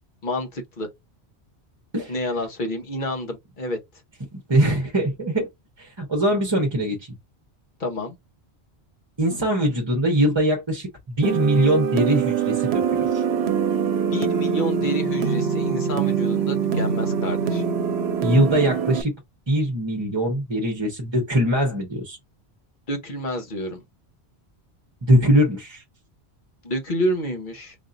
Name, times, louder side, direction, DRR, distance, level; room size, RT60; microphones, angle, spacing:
voice 1, 0.2-0.9 2.1-3.8 7.8-8.1 14.1-17.6 22.9-23.8 26.6-27.7, equal, 50° left, 1.1 m, -28 dB
voice 2, 4.3-5.5 5.8-7.1 9.2-13.2 18.2-19.1 19.5-22.2 25.0-25.8, right 1 dB, 25° right, 0.9 m, -22 dB
sound 1, 11.2-19.0, right 7 dB, 80° right, 0.9 m, -23 dB
5.0 x 2.7 x 2.5 m
omnidirectional pair, 1.1 m